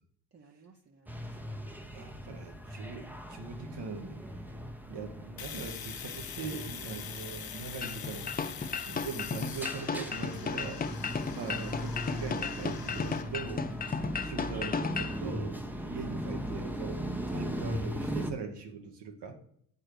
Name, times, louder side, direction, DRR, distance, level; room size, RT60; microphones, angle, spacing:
voice 1, 0.3-1.7 6.9-7.2 15.7-15.9, right 5 dB, 30° right, 1 dB, 0.9 m, -58 dB
sound 1, 1.1-18.3, equal, 5° right, 0.8 m, -39 dB
voice 2, 1.9-4.2 4.9-8.3 8.9-10.9 11.3-13.9 14.2-19.4, right 5 dB, 65° right, 4 dB, 1.6 m, -41 dB
Domestic sounds home sounds, 5.4-13.2, left 8 dB, 50° left, 1.0 m, -44 dB
sound 2, 7.8-15.2, left 5 dB, 20° left, 0.5 m, -35 dB
7.6 x 4.7 x 4.9 m, 0.67 s
cardioid pair, 75°, 45 cm